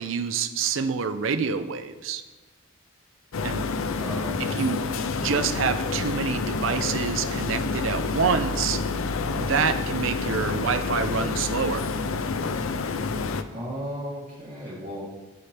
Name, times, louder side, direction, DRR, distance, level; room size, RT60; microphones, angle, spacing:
voice 1, 0.0-2.2 3.4-3.6 4.4-4.8 5.2-8.8 9.3-11.9, right 5 dB, 75° right, 10 dB, 0.6 m, -27 dB
sound 1, 3.3-13.4, left 4 dB, 85° left, 0.5 m, -28 dB
voice 2, 4.0-4.6 13.5-15.2, equal, 40° right, -6 dB, 3.0 m, -35 dB
13.5 x 5.6 x 3.4 m, 1.2 s
head